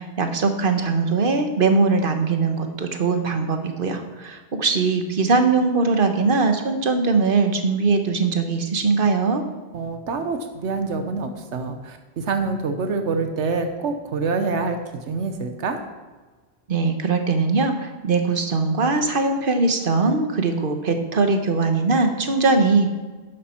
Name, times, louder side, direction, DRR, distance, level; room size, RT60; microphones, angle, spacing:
voice 1, 0.0-9.4 16.7-22.9, right 4 dB, 50° right, 6 dB, 1.3 m, -21 dB
voice 2, 9.7-14.8 15.1-15.8, right 4 dB, 90° right, 6 dB, 1.2 m, -26 dB
12.0 x 10.0 x 4.4 m, 1.3 s
omnidirectional pair, 1.1 m